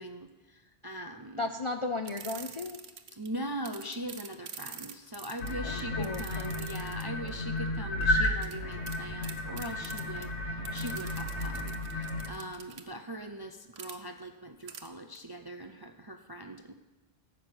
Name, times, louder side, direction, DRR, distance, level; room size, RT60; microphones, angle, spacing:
voice 1, 0.0-1.5 3.1-16.7, right 1 dB, 30° right, 7 dB, 0.4 m, -41 dB
voice 2, 1.4-2.8 5.6-6.6, left 3 dB, 40° left, 5 dB, 0.4 m, -35 dB
sound 1, 2.0-3.3 3.6-7.3 8.4-8.6 8.9-9.0 9.2-10.3 10.6-12.8 13.8-14.0 14.7-14.9 15.1-15.2, right 7 dB, 85° right, 1.2 m, -45 dB
sound 2, 5.4-12.3, left 1 dB, 60° left, 1.7 m, -33 dB
15.0 x 6.2 x 7.9 m, 1.2 s
omnidirectional pair, 1.3 m